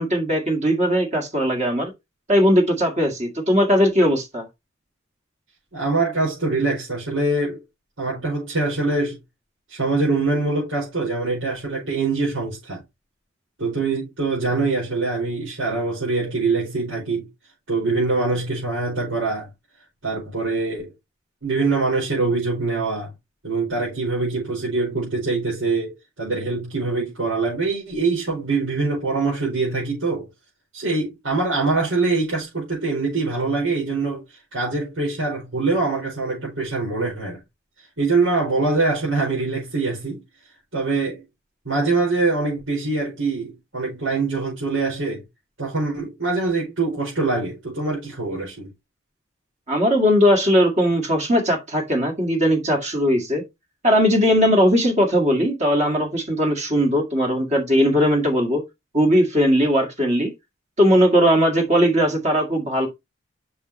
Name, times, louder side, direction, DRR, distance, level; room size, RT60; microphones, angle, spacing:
voice 1, 0.0-1.9 2.3-4.4 49.7-53.4 53.8-58.6 58.9-60.3 60.8-62.9, equal, 35° right, 2.0 m, -19 dB
voice 2, 5.7-7.6 8.0-9.2 9.7-12.8 13.6-17.3 17.7-19.5 20.0-20.9 21.4-23.1 23.4-30.3 30.7-34.2 34.5-37.4 38.0-40.2 40.7-41.2 41.7-45.2 45.6-48.7, right 3 dB, 80° right, 5.3 m, -24 dB
7.1 x 6.1 x 3.1 m
head